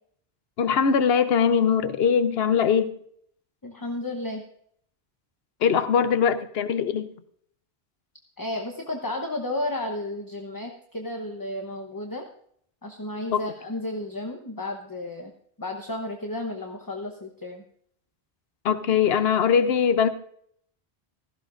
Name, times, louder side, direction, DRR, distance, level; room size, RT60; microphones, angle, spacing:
voice 1, 0.6-2.9 5.6-7.1 13.3-13.4 18.6-20.1, left 7 dB, 70° left, 11 dB, 1.0 m, -21 dB
voice 2, 3.6-4.4 8.4-12.3 12.8-15.3 15.6-17.6, left 1 dB, 20° left, 3 dB, 0.9 m, -33 dB
16.5 x 14.5 x 2.5 m, 0.65 s
omnidirectional pair, 1.1 m